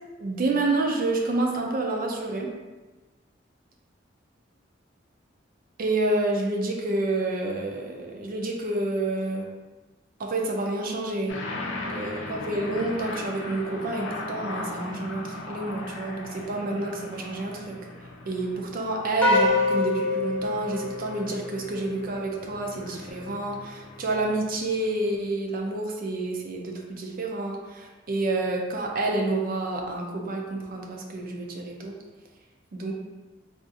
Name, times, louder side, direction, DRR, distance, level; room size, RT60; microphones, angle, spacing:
voice 1, 0.2-2.5 5.8-9.5 10.2-11.4 11.9-17.8 18.3-32.0 32.7-32.9, right 2 dB, 50° right, 0 dB, 0.4 m, -29 dB
sound 1, 11.3-25.0, left 2 dB, 75° left, 0.5 m, -38 dB
sound 2, 19.2-21.7, left 3 dB, 10° left, 0.5 m, -25 dB
3.6 x 2.4 x 2.6 m, 1.2 s
head